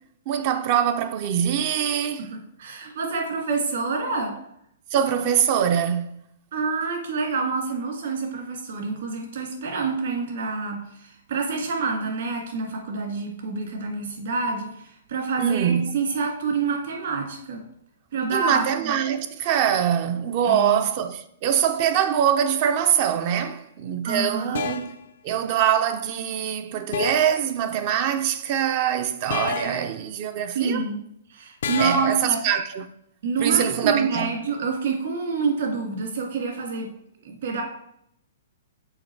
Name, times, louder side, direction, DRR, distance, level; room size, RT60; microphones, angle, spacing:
voice 1, 0.3-2.3 4.9-6.2 15.4-16.0 18.3-24.8 25.2-30.8 31.8-32.9 33.4-34.3, right 9 dB, 35° right, 0.4 m, -23 dB
voice 2, 2.2-4.4 6.5-17.6 18.1-18.9 20.4-20.8 24.0-24.6 30.5-31.0 31.3-32.4 33.2-36.9 37.2-37.6, right 4 dB, 65° right, 2.0 m, -27 dB
sound 1, 23.3-23.5 24.5-25.0 26.9-27.4 29.3-29.9 31.6-32.2, left 6 dB, 70° left, 0.5 m, -30 dB
6.3 x 3.9 x 4.5 m
hypercardioid pair, 155°, 0 cm